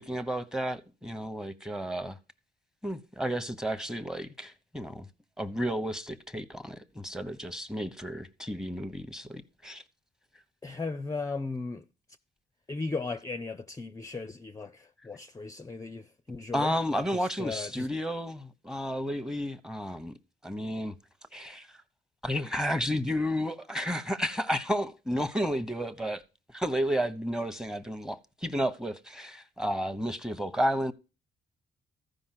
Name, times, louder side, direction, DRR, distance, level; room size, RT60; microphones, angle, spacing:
voice 1, 0.0-2.2 2.8-5.1 5.4-9.8 16.5-20.1 20.4-20.9 21.3-21.7 22.2-26.2 26.5-30.9, equal, 5° right, 0.9 m, -32 dB
voice 2, 10.6-11.8 12.7-17.9, left 3 dB, 15° left, 0.5 m, -37 dB
14.0 x 5.2 x 5.9 m
cardioid pair, 90°, 20 cm